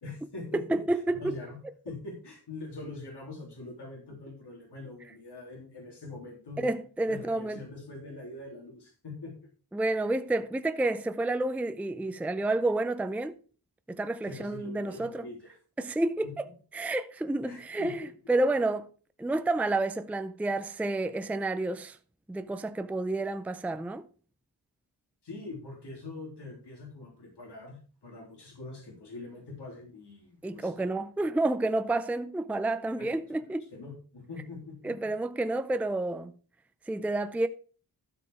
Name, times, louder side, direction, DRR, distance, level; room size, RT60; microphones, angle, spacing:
voice 1, 0.0-0.8 1.2-1.6 1.8-6.7 7.1-9.3 14.2-15.6 16.2-16.3 17.5-17.9 25.2-30.9 33.0-33.1 33.7-34.9, left 2 dB, 80° left, 3.3 m, -43 dB
voice 2, 0.5-1.3 6.6-7.6 9.7-13.3 13.9-15.3 15.8-16.5 16.7-18.9 19.2-22.0 22.3-24.1 30.4-33.7 34.8-36.3 36.9-37.5, right 2 dB, 5° right, 0.4 m, -30 dB
13.0 x 5.0 x 4.8 m
wide cardioid pair, 130°, 40 cm